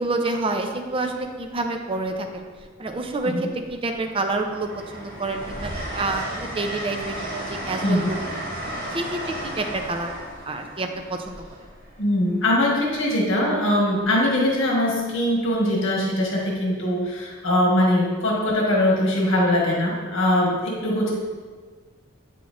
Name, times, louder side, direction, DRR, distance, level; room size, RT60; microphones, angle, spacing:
voice 1, 0.0-2.5 2.8-8.2 8.9-10.2 10.5-11.4, right 2 dB, 25° right, 4 dB, 0.5 m, -28 dB
Train, 1.0-1.2 2.5-3.2 3.6-12.4 14.0-14.2, right 1 dB, 50° right, 1.8 m, -34 dB
voice 2, 12.0-21.1, left 1 dB, 70° left, -2 dB, 1.3 m, -21 dB
8.5 x 6.0 x 2.5 m, 1.5 s
head